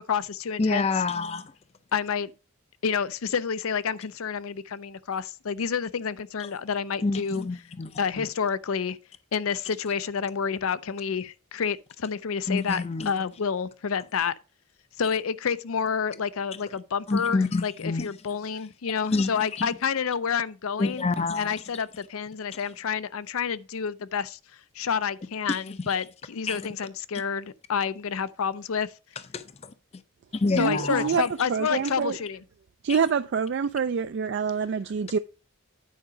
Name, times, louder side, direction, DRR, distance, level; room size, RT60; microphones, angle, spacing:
voice 1, 0.0-0.8 1.9-2.3 2.8-7.4 8.0-9.0 9.3-14.3 15.0-21.0 21.4-24.4 24.8-28.9 30.6-32.4, left 6 dB, 80° left, 0.5 m, -29 dB
voice 2, 0.6-1.5 6.4-6.5 7.0-8.3 12.5-13.1 17.1-18.1 19.0-19.7 20.8-21.8 22.6-22.7 25.5-25.9 26.5-26.7 29.3-29.7 30.3-31.2 32.9-33.0, left 3 dB, 30° left, 0.5 m, -28 dB
voice 3, 30.6-31.2 31.5-32.2 32.8-35.2, right 6 dB, 55° right, 0.3 m, -26 dB
9.3 x 4.9 x 4.9 m
head